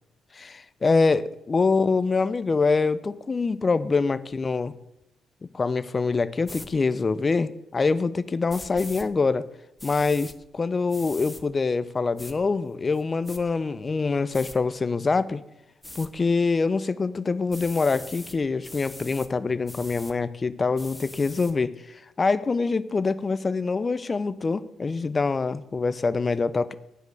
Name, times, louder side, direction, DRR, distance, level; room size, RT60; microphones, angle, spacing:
voice 1, 0.3-4.7 5.5-9.5 9.8-15.4 15.9-26.7, left 4 dB, 30° left, 15 dB, 0.6 m, -25 dB
sound 1, 6.4-6.7 8.5-9.1 9.8-10.4 10.9-11.4 12.2-12.3 12.9-13.4 14.3-14.6 15.8-16.1 17.5-18.4 18.6-19.3 19.7-20.1 20.8-21.5, left 1 dB, 10° left, 1.0 m, -42 dB
9.8 x 5.2 x 7.7 m, 0.83 s
cardioid pair, 90°, 0 cm